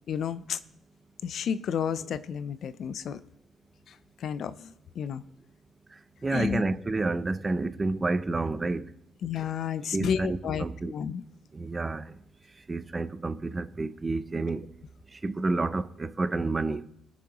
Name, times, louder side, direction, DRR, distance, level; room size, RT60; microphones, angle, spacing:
voice 1, 0.1-0.6 1.2-3.2 3.9-5.2 6.3-6.6 9.2-11.2, left 7 dB, 65° left, 0.4 m, -31 dB
voice 2, 5.9-8.9 9.9-10.9 11.5-12.2 12.6-14.7 15.1-16.8, right 3 dB, 25° right, 0.5 m, -30 dB
18.0 x 6.2 x 3.0 m
cardioid pair, 90°, 0 cm